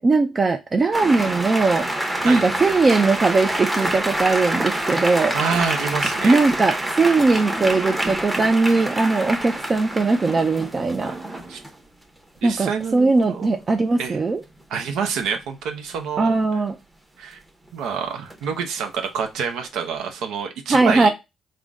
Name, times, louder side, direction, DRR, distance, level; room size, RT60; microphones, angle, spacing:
voice 1, 0.0-1.8 2.2-5.3 6.2-11.1 12.4-14.4 16.2-16.7 20.7-21.1, right 3 dB, 35° right, 0.4 m, -19 dB
sound 1, 0.9-11.7 13.6-13.7 14.0-14.3 18.3-18.6, right 1 dB, 15° right, 0.8 m, -26 dB
voice 2, 4.5-4.8 5.3-6.4 11.5-11.6 12.4-13.6 14.0-14.2 14.7-16.3 17.2-17.4 17.7-21.1, right 6 dB, 90° right, 0.6 m, -27 dB
3.7 x 2.1 x 3.5 m
cardioid pair, 90°, 0 cm